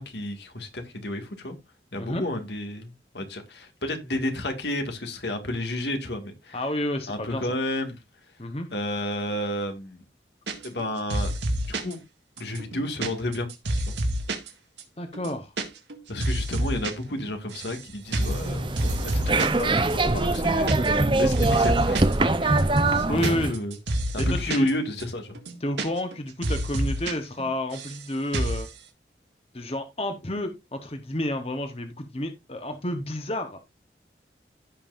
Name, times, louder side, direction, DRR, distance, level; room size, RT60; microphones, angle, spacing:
voice 1, 0.0-1.6 1.9-6.6 7.1-8.0 8.7-10.0 10.6-11.3 11.7-12.0 12.4-13.5 13.9-14.0 16.1-23.8 24.4-25.4, left 1 dB, 80° left, 2.0 m, -32 dB
voice 2, 6.5-7.5 8.4-8.7 15.0-15.5 23.1-23.6 24.2-24.7 25.6-28.7 29.5-33.6, left 1 dB, 35° left, 1.0 m, -30 dB
sound 1, 10.5-10.8 11.1-11.9 12.4-14.5 14.8-14.9 15.1-15.6 15.9-16.9 17.2-17.8 18.1-18.4 18.8-19.6 19.9-20.0 20.2-21.1 21.3-22.1 22.6-24.7 25.0-25.1 25.3-26.2 26.4-27.1 27.4-28.0 28.3-28.7, right 1 dB, 90° right, 2.0 m, -28 dB
sound 2, 18.1-23.6, right 2 dB, 30° right, 0.7 m, -23 dB
15.5 x 5.4 x 2.5 m
head